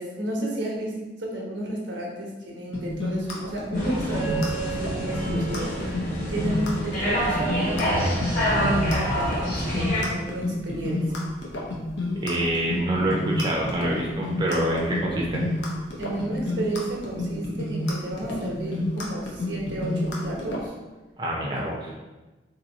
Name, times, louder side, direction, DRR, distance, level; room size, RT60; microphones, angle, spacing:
voice 1, 0.0-11.2 16.0-20.7 21.5-22.0, right 1 dB, 90° right, -2 dB, 0.9 m, -32 dB
sound 1, 2.7-20.6, left 2 dB, 80° left, 0.8 m, -29 dB
sound 2, 3.7-10.0, equal, 45° left, 1.1 m, -27 dB
voice 2, 12.2-15.4 21.2-21.9, right 1 dB, 25° right, -3 dB, 0.5 m, -26 dB
2.9 x 2.8 x 3.9 m, 1.1 s
head